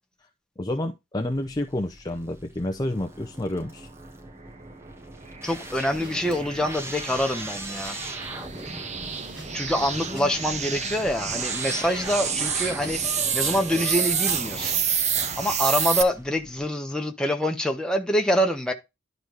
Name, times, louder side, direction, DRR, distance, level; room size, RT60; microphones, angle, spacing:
voice 1, 0.6-3.9, left 1 dB, 20° left, 0.7 m, -29 dB
sound 1, 1.1-16.7, right 1 dB, 15° right, 1.0 m, -40 dB
sound 2, 4.5-16.0, right 7 dB, 35° right, 0.8 m, -29 dB
voice 2, 5.4-8.0 9.5-14.8 15.4-18.7, equal, 5° left, 1.2 m, -26 dB
sound 3, 5.7-14.9, right 2 dB, 60° right, 4.3 m, -47 dB
11.0 x 4.0 x 4.9 m
head